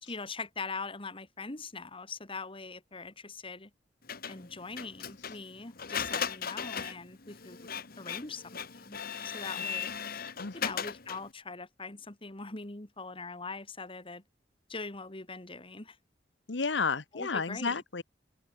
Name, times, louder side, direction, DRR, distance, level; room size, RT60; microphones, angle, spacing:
voice 1, 0.0-3.7 4.3-7.7 8.0-8.4 8.7-9.0 9.2-9.9 10.5-14.2 14.7-16.0 17.1-17.8, left 3 dB, 30° left, 2.3 m, -42 dB
Printer, 4.1-11.3, left 7 dB, 55° left, 1.8 m, -38 dB
voice 2, 10.4-10.7 16.5-18.0, left 4 dB, 85° left, 1.2 m, -32 dB
open air
head